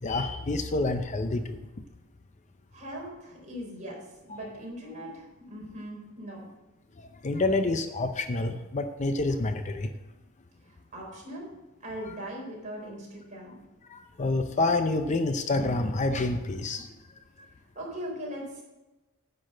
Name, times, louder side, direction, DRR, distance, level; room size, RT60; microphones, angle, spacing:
voice 1, 0.0-1.6 4.3-4.4 7.2-9.9 13.9-16.9, left 2 dB, 35° left, 7 dB, 0.6 m, -28 dB
voice 2, 2.7-4.0 4.3-6.4 10.6-11.5 11.8-13.6 17.7-18.6, equal, 35° right, -2 dB, 4.0 m, -40 dB
10.0 x 6.2 x 7.4 m, 1.1 s
head